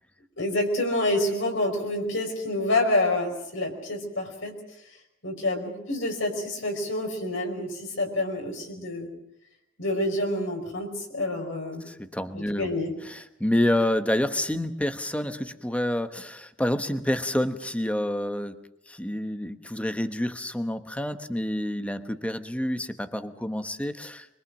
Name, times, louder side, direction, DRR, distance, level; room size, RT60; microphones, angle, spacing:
voice 1, 0.4-4.5 5.2-9.1 9.8-11.9 12.3-12.9, left 1 dB, 75° left, 1 dB, 4.9 m, -28 dB
voice 2, 11.9-12.7 13.0-18.6 18.9-24.3, left 1 dB, 5° left, 9 dB, 1.1 m, -28 dB
24.5 x 22.5 x 6.4 m, 0.80 s
head